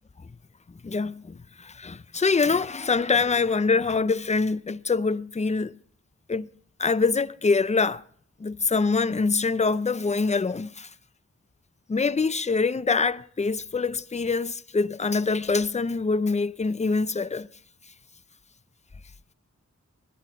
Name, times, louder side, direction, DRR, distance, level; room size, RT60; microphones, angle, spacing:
voice 1, 0.7-5.8 6.3-6.5 6.8-8.0 8.4-10.9 11.9-17.5, left 4 dB, 20° left, 0.5 m, -25 dB
17.5 x 11.0 x 4.4 m
wide cardioid pair, 50°, 31 cm